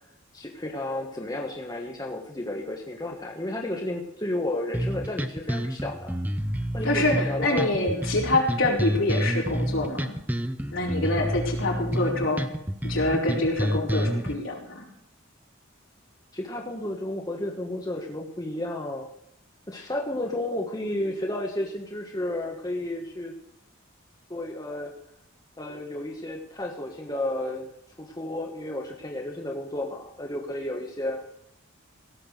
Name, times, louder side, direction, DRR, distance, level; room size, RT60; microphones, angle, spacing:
voice 1, 0.3-6.1 6.7-8.1 16.3-19.1 19.7-23.3 24.3-24.9 25.6-27.7 28.0-31.2, left 1 dB, 20° left, 0 dB, 1.4 m, -32 dB
sound 1, 4.7-14.3, equal, 10° right, 0.7 m, -29 dB
voice 2, 6.8-10.1 10.7-12.5 12.8-14.9, left 2 dB, 70° left, -1 dB, 4.4 m, -26 dB
17.0 x 7.1 x 6.6 m, 0.77 s
head